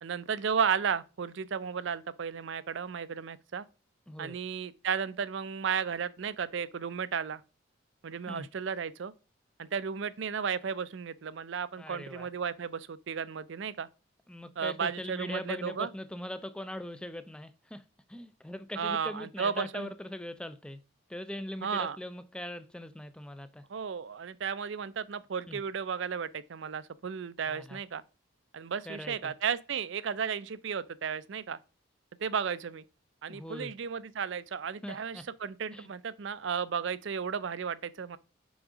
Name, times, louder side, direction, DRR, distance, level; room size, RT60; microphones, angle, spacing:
voice 1, 0.0-3.6 4.2-7.4 8.0-9.1 9.6-13.9 14.6-15.9 18.8-19.9 21.6-22.0 23.7-28.0 28.5-31.6 32.2-32.8 33.2-38.2, right 6 dB, 65° right, 0.4 m, -34 dB
voice 2, 4.1-4.4 8.3-8.5 11.8-12.3 14.3-17.8 18.1-20.8 21.1-23.6 25.5-25.6 27.5-27.8 28.9-29.3 33.3-33.7 34.8-35.2 35.7-35.9, left 1 dB, 5° left, 0.3 m, -41 dB
6.2 x 3.6 x 4.9 m
head